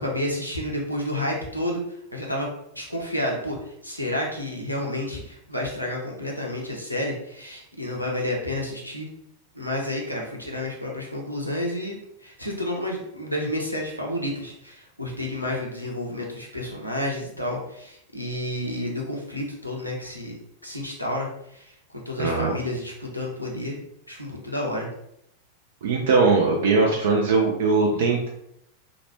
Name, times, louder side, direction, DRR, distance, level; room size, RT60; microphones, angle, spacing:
voice 1, 0.0-1.8 2.1-2.5 2.7-3.6 3.8-9.1 9.5-23.8 24.1-24.9, left 1 dB, 90° left, -2 dB, 0.6 m, -30 dB
voice 2, 22.2-22.5 25.8-28.3, right 4 dB, 60° right, 0 dB, 0.4 m, -20 dB
2.8 x 2.1 x 3.0 m, 0.75 s
figure-of-eight pair, 90°, 0 cm